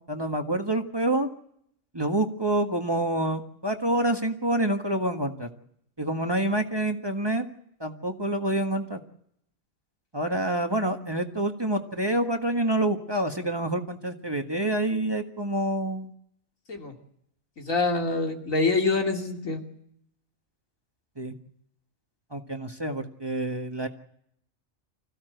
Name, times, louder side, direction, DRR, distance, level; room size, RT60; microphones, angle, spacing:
voice 1, 0.1-1.3 1.9-5.5 6.0-7.4 7.8-9.0 10.1-16.1 21.2-21.3 22.3-23.9, right 1 dB, 20° right, 4 dB, 1.6 m, -27 dB
voice 2, 17.6-19.6, left 3 dB, 85° left, 2 dB, 3.2 m, -25 dB
26.0 x 16.0 x 8.0 m, 0.73 s
omnidirectional pair, 1.4 m